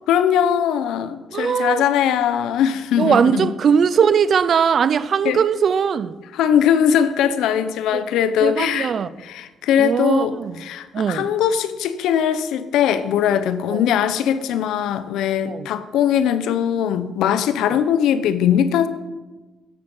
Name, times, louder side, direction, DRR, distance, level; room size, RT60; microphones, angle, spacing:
voice 1, 0.1-3.5 5.2-5.4 6.3-8.9 9.2-18.9, left 9 dB, 85° left, 0.9 m, -20 dB
voice 2, 1.3-1.8 3.0-6.2 7.9-8.0 8.4-9.1 9.8-10.6 10.9-11.3 13.7-13.8 15.5-15.7 17.7-17.8, right 7 dB, 55° right, 0.6 m, -19 dB
13.5 x 10.5 x 5.6 m
cardioid pair, 90°, 0 cm